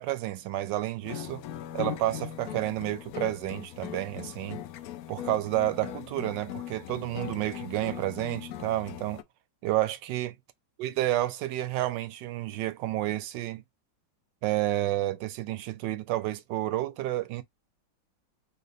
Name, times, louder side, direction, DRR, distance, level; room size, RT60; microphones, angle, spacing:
voice 1, 0.0-1.4 1.7-4.6 5.1-9.2 9.6-10.3 10.8-13.6 14.4-17.4, right 15 dB, 75° right, 1.2 m, -30 dB
sound 1, 1.0-9.2, left 11 dB, 80° left, 0.8 m, -39 dB
4.8 x 2.5 x 3.0 m
omnidirectional pair, 2.0 m